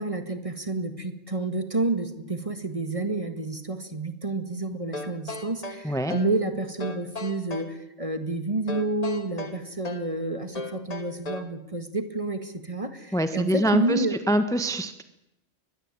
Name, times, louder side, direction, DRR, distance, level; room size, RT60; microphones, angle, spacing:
voice 1, 0.0-14.2, right 2 dB, 25° right, 10 dB, 1.8 m, -29 dB
sound 1, 4.9-6.4 6.8-7.8 8.7-10.1 10.5-11.6, left 2 dB, 30° left, 1.5 m, -37 dB
voice 2, 5.8-6.2 13.1-15.0, equal, 5° left, 10 dB, 1.3 m, -25 dB
23.0 x 20.5 x 9.0 m, 0.85 s
omnidirectional pair, 1.3 m